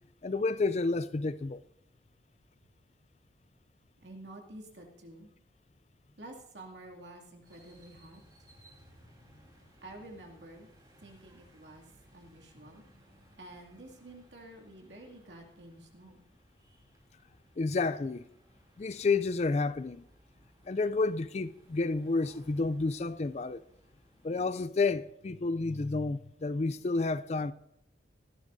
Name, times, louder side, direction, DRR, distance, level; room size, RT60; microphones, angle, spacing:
voice 1, 0.2-1.6 17.6-18.3 18.8-20.0 20.7-23.6 24.2-27.5, left 3 dB, 35° left, 0.4 m, -30 dB
voice 2, 4.0-5.3 6.2-8.2 9.8-10.7 11.0-11.9 12.1-12.8 13.4-16.2, right 1 dB, 80° right, 2.5 m, -50 dB
sound 1, 7.4-24.3, right 1 dB, 20° right, 2.9 m, -62 dB
19.0 x 13.0 x 2.7 m
head